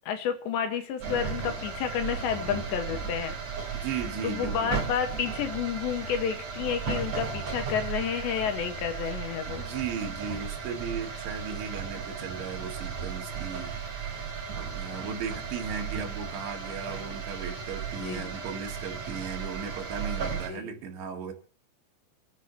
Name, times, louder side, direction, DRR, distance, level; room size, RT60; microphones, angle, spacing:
voice 1, 0.0-3.4 4.2-9.6 18.0-18.3 20.5-20.7, left 8 dB, 70° left, 6 dB, 3.6 m, -30 dB
sound 1, 1.0-20.5, right 6 dB, 35° right, 4.8 m, -35 dB
voice 2, 3.7-4.8 9.5-13.7 14.7-21.3, right 6 dB, 75° right, 4 dB, 4.3 m, -36 dB
27.5 x 9.9 x 3.0 m, 0.38 s
omnidirectional pair, 5.5 m